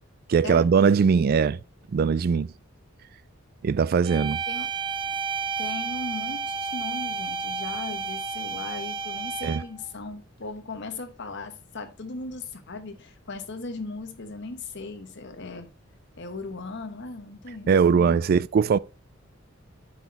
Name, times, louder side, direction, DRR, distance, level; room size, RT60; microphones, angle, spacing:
voice 1, 0.3-1.6 1.9-2.5 3.6-4.4 9.4-9.6 17.7-18.8, right 6 dB, 45° right, 0.3 m, -20 dB
sound 1, 4.0-9.8, right 5 dB, 25° right, 0.9 m, -31 dB
voice 2, 5.6-15.7 16.2-18.4, left 3 dB, 60° left, 1.0 m, -38 dB
7.9 x 4.4 x 4.1 m
head